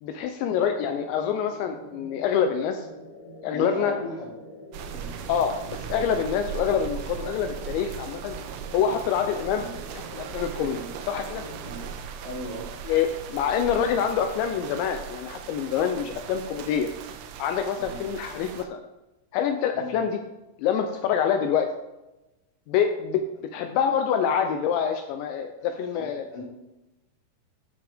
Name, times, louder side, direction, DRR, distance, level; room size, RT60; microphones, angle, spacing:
voice 1, 0.0-2.9 3.4-3.9 5.3-8.4 8.7-9.7 9.9-10.8 11.1-11.4 12.9-16.9 17.4-18.8 19.3-20.2 20.6-21.7 22.7-23.2 23.5-26.2, left 8 dB, 80° left, 6 dB, 2.7 m, -26 dB
sound 1, 0.6-11.9, equal, 20° left, 1.2 m, -45 dB
voice 2, 3.5-4.3 4.9-5.1 8.8-9.0 9.5-9.7 10.7-10.9 11.6-11.8 12.2-12.7 16.0-16.1 17.8-18.0 19.7-20.0 25.6-26.4, right 1 dB, 25° right, -7 dB, 1.9 m, -38 dB
sound 2, 4.7-18.7, right 8 dB, 80° right, 2.8 m, -39 dB
11.5 x 6.1 x 3.5 m, 0.98 s
omnidirectional pair, 5.6 m